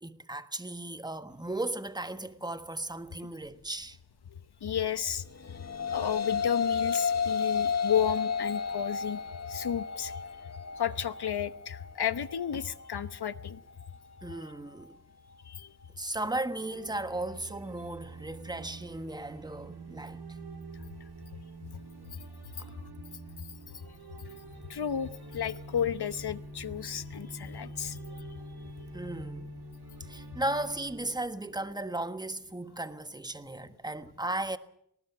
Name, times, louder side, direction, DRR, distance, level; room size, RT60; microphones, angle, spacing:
voice 1, 0.0-4.0 14.2-15.0 16.0-20.4 28.9-29.5 30.0-34.6, right 2 dB, 10° right, 1.5 m, -36 dB
voice 2, 4.3-9.2 9.5-10.2 10.8-13.6 15.4-15.7 20.8-20.9 22.1-22.3 22.5-22.7 23.7-24.2 24.7-28.0, left 8 dB, 85° left, 1.0 m, -33 dB
sound 1, 5.3-14.5, left 6 dB, 40° left, 1.3 m, -33 dB
sound 2, 16.2-32.3, right 2 dB, 85° right, 2.9 m, -46 dB
19.5 x 18.5 x 7.9 m
cardioid pair, 50°, 38 cm